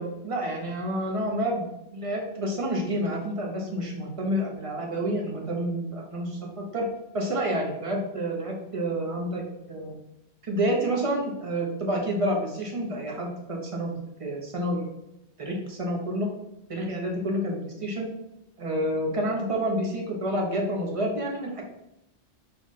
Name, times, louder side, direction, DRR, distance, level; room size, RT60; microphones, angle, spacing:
voice 1, 0.0-6.9 7.1-9.4 9.7-10.0 10.4-14.9 15.4-16.3 16.7-18.1 18.6-21.6, right 1 dB, 30° right, 0 dB, 0.9 m, -29 dB
5.2 x 2.4 x 4.1 m, 0.87 s
omnidirectional pair, 1.2 m